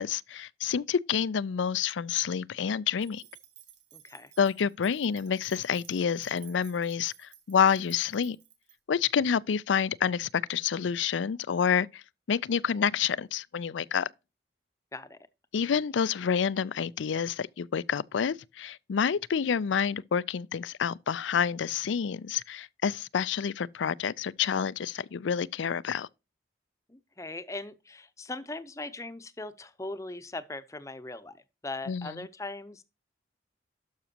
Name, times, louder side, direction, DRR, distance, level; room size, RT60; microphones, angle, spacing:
voice 1, 0.0-3.2 4.4-8.4 8.9-12.0 12.3-14.1 15.5-26.1 31.9-32.1, left 7 dB, 85° left, 0.4 m, -28 dB
sound 1, 3.0-8.7, right 11 dB, 70° right, 2.0 m, -56 dB
voice 2, 3.9-4.3 14.9-15.2 26.9-31.4 31.6-32.8, left 2 dB, 15° left, 0.7 m, -39 dB
12.0 x 6.0 x 2.8 m
head